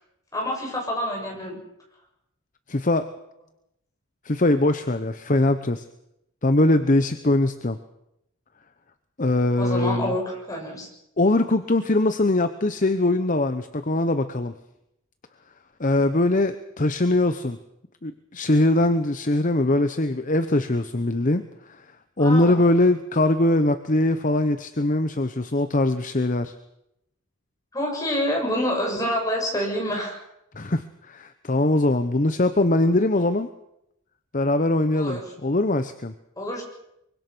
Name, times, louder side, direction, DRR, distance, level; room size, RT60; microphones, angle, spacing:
voice 1, 0.3-1.6 9.6-10.9 22.2-22.6 27.7-30.2 34.9-35.2 36.4-36.6, equal, 15° left, -1 dB, 7.2 m, -27 dB
voice 2, 2.7-3.1 4.2-5.8 6.4-7.8 9.2-10.1 11.2-14.5 15.8-17.6 18.0-21.5 22.2-26.5 30.5-33.5 34.3-36.1, left 2 dB, 35° left, 10 dB, 0.9 m, -22 dB
24.0 x 24.0 x 6.2 m, 0.82 s
head